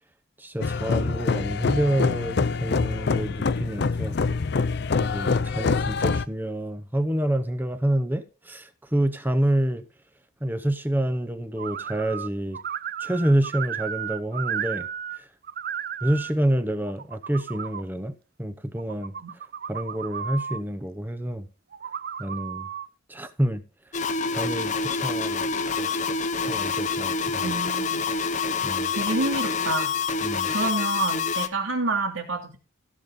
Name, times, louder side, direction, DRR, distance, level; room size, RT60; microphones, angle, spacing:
voice 1, 0.4-4.2 5.0-9.8 10.4-12.6 13.0-14.9 15.2-15.3 16.0-18.1 18.4-19.2 19.7-21.5 22.2-22.7 23.1-23.6 24.3-25.5 25.8-26.2 26.5-27.5 28.6-28.9 30.2-30.5, right 1 dB, 10° right, 0.8 m, -27 dB
sound 1, 0.6-6.3, left 4 dB, 55° left, 0.5 m, -25 dB
sound 2, 11.6-12.3 12.5-15.2 15.4-16.3 16.9-17.8 18.8-20.6 21.7-22.9, right 8 dB, 50° right, 0.5 m, -34 dB
sound 3, 23.9-31.5, left 4 dB, 35° left, 0.9 m, -27 dB
voice 2, 27.4-28.1 28.9-29.9 30.5-32.6, right 3 dB, 90° right, 2.9 m, -28 dB
16.0 x 6.8 x 3.8 m
head